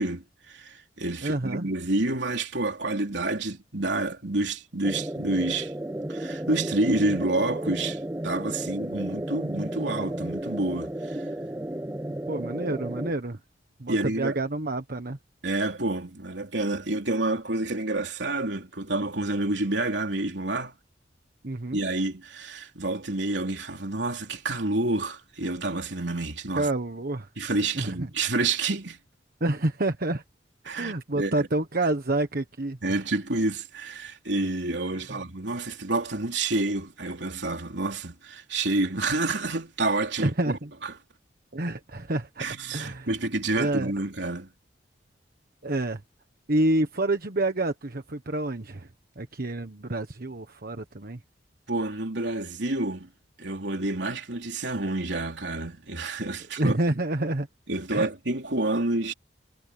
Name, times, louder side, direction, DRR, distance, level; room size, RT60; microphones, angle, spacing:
voice 1, 0.0-5.7 6.1-11.3 13.9-14.4 15.4-20.7 21.7-26.7 27.4-29.0 30.6-31.5 32.8-41.0 42.4-44.5 51.7-53.1 53.4-56.8 57.7-59.1, right 2 dB, 70° right, 3.7 m, -29 dB
voice 2, 1.2-1.7 12.3-13.4 13.8-15.2 21.4-21.8 26.6-27.3 27.7-28.1 29.4-30.2 30.7-32.8 35.1-35.2 40.2-40.7 41.5-43.1 43.5-43.9 45.6-46.0 46.5-48.9 49.2-51.2 56.6-57.5 57.9-58.1, right 2 dB, 55° right, 1.4 m, -28 dB
sound 1, 4.8-13.1, right 1 dB, 15° right, 0.8 m, -33 dB
head